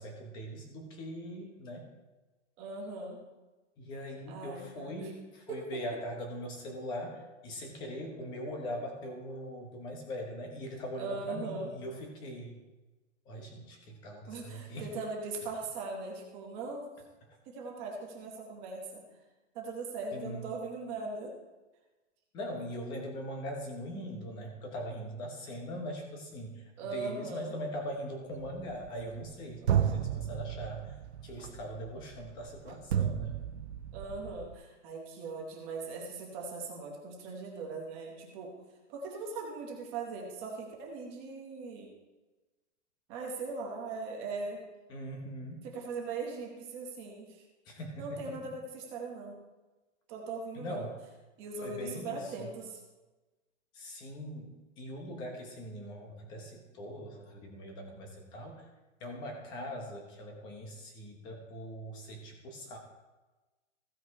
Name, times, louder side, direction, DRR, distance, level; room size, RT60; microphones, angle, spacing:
voice 1, 0.0-1.9 3.8-12.6 13.2-14.9 20.1-20.5 22.3-31.0 31.2-33.4 44.9-45.7 47.7-48.2 50.5-51.0 51.6-52.5 53.7-58.7 59.0-62.8, equal, 10° left, 2 dB, 0.9 m, -41 dB
voice 2, 2.6-3.3 4.3-5.1 5.5-5.8 11.0-11.7 14.3-16.9 17.5-19.0 19.5-21.3 26.8-27.5 33.9-38.5 38.9-41.9 43.1-44.6 45.6-47.4 48.0-49.4 50.1-50.8 51.4-52.8, right 3 dB, 15° right, -1 dB, 1.0 m, -40 dB
sound 1, 28.3-29.3 29.7-34.5, right 9 dB, 60° right, 0.7 m, -33 dB
15.5 x 5.6 x 4.7 m, 1.2 s
hypercardioid pair, 175°, 38 cm